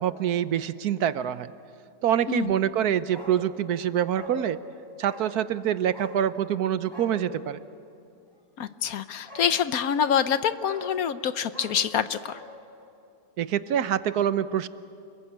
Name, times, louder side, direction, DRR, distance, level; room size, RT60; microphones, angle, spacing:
voice 1, 0.0-1.5 2.0-4.6 5.0-7.6 13.4-14.7, right 10 dB, 70° right, 14 dB, 1.3 m, -25 dB
Bark, 3.1-3.4 3.7-3.8 4.1-4.4 5.0-5.3 5.9-6.2 6.8-7.2 8.8-8.9 9.3-9.5 9.8-10.1 10.6-10.9 11.5-12.5 12.8-12.9, left 2 dB, 15° left, 6.1 m, -42 dB
voice 2, 8.6-12.4, left 8 dB, 65° left, 12 dB, 1.2 m, -26 dB
29.0 x 21.0 x 8.7 m, 2.6 s
omnidirectional pair, 1.7 m